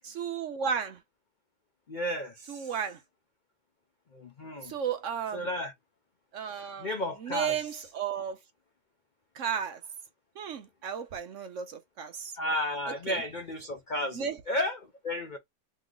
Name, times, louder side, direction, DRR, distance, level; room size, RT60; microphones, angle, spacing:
voice 1, 0.0-1.0 2.5-3.0 4.6-5.5 6.3-8.4 9.4-9.8 10.4-12.3 12.9-13.2 14.1-14.4, right 7 dB, 60° right, 0.9 m, -34 dB
voice 2, 1.9-2.6 4.1-4.7 5.3-5.7 6.8-7.5 12.4-15.4, left 1 dB, 90° left, 0.4 m, -33 dB
3.1 x 3.1 x 3.8 m
omnidirectional pair, 1.8 m